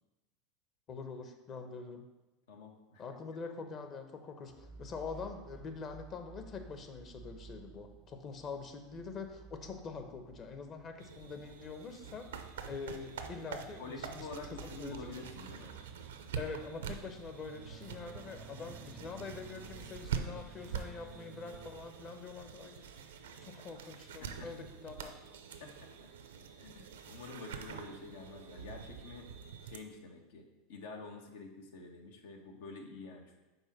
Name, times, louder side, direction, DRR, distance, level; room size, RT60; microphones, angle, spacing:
voice 1, 0.9-2.1 3.0-15.2 16.3-23.0 23.4-25.1, left 4 dB, 40° left, 6 dB, 1.0 m, -45 dB
voice 2, 2.5-3.0 13.8-15.8 24.2-24.5 25.6-26.1 26.6-29.3 29.6-33.4, left 3 dB, 80° left, 3 dB, 1.2 m, -48 dB
sound 1, 4.5-22.6, right 5 dB, 25° right, 0.4 m, -55 dB
sound 2, 11.0-29.8, right 7 dB, 90° right, 0.6 m, -45 dB
5.4 x 4.3 x 6.1 m, 1.1 s
hypercardioid pair, 105°, 0 cm